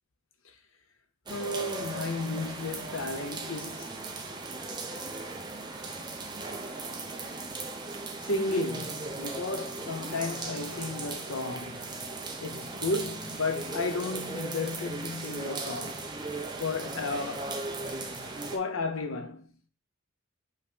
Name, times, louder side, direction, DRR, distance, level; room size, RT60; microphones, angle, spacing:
voice 1, 1.3-4.0 8.2-11.9 12.4-16.0 16.6-17.6 18.5-19.5, left 3 dB, 70° left, 0.8 m, -33 dB
sound 1, 1.3-18.6, right 3 dB, 20° right, 0.8 m, -37 dB
5.7 x 3.2 x 5.1 m
head